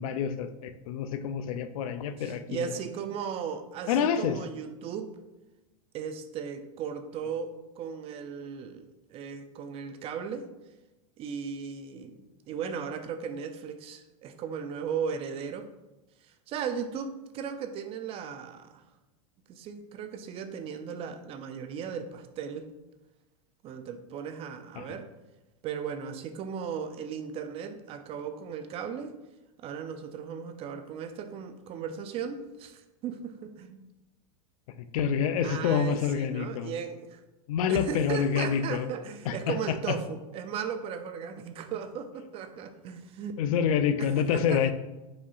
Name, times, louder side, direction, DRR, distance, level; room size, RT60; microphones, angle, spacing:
voice 1, 0.0-2.7 3.9-4.4 24.8-25.0 34.9-36.7 37.5-38.9 39.3-39.9 43.4-44.7, left 7 dB, 70° left, 10 dB, 0.4 m, -27 dB
voice 2, 2.2-5.1 5.9-10.5 11.2-12.2 12.5-15.7 16.2-18.8 19.5-22.7 23.6-25.1 25.6-29.1 29.6-33.8 35.4-37.2 37.7-43.4 44.0-44.7, right 7 dB, 30° right, 8 dB, 0.3 m, -37 dB
4.9 x 2.8 x 2.3 m, 1.0 s
supercardioid pair, 120°, 18 cm